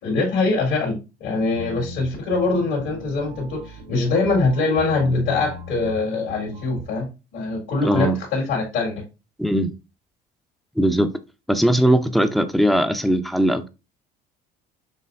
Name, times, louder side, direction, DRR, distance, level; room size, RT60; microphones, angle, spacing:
voice 1, 0.0-9.0, left 3 dB, 65° left, 2.2 m, -23 dB
sound 1, 1.5-6.8, left 1 dB, 85° right, 1.1 m, -38 dB
voice 2, 7.8-8.2 9.4-9.7 10.8-11.1 11.5-13.7, right 1 dB, ahead, 0.6 m, -19 dB
6.7 x 3.1 x 2.6 m
supercardioid pair, 75°, 21 cm